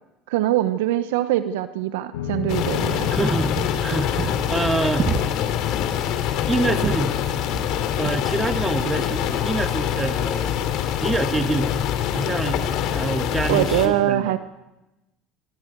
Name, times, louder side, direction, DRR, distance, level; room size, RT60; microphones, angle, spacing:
voice 1, 0.3-3.2 13.5-14.4, right 13 dB, 75° right, 12 dB, 0.9 m, -23 dB
sound 1, 2.1-8.7, left 5 dB, 85° left, 6.0 m, -35 dB
sound 2, 2.5-13.9, left 10 dB, 60° left, 2.9 m, -25 dB
sound 3, 2.8-2.9 3.4-3.9 4.2-4.4 5.0-5.5 5.8-6.0 6.4-7.1 7.5-7.8 8.0-8.2 9.0-9.2, right 5 dB, 40° right, 2.5 m, -29 dB
voice 2, 3.1-5.1 6.5-7.2 8.0-10.6 11.0-11.8 12.1-14.4, right 3 dB, 20° right, 7 dB, 2.3 m, -26 dB
26.0 x 26.0 x 4.7 m, 0.96 s
hypercardioid pair, 75°, 0 cm